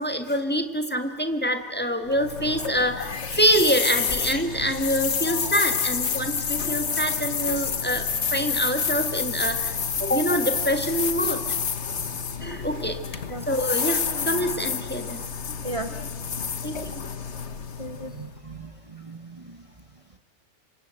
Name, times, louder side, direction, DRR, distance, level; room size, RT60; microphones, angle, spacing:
voice 1, 0.0-11.4 12.4-13.0 13.5-15.2 16.6-17.0, equal, 10° left, 6 dB, 1.9 m, -26 dB
sound 1, 2.1-18.3, left 6 dB, 75° left, 1.5 m, -29 dB
voice 2, 17.8-19.6, right 2 dB, 30° right, 7 dB, 1.2 m, -36 dB
27.0 x 25.0 x 7.8 m, 1.5 s
omnidirectional pair, 1.2 m